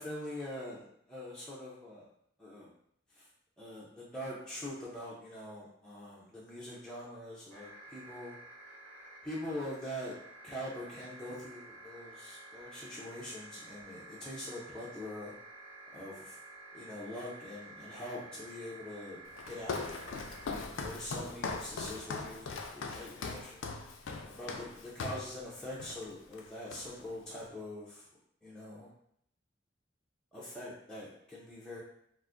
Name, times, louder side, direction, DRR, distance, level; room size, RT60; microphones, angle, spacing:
voice 1, 0.0-2.1 2.4-2.7 3.1-3.3 3.6-8.4 9.2-10.2 10.4-15.3 15.9-16.4 16.7-19.2 19.5-20.1 20.5-23.7 24.3-28.1 28.4-28.9 30.3-31.8, left 1 dB, 5° left, -8 dB, 0.5 m, -43 dB
sound 1, 7.5-20.6, right 2 dB, 90° right, 1.3 m, -52 dB
Walk footsteps, 19.3-25.3 25.8-26.1 26.3-27.1, left 4 dB, 80° left, 0.4 m, -40 dB
2.4 x 2.4 x 3.6 m, 0.70 s
head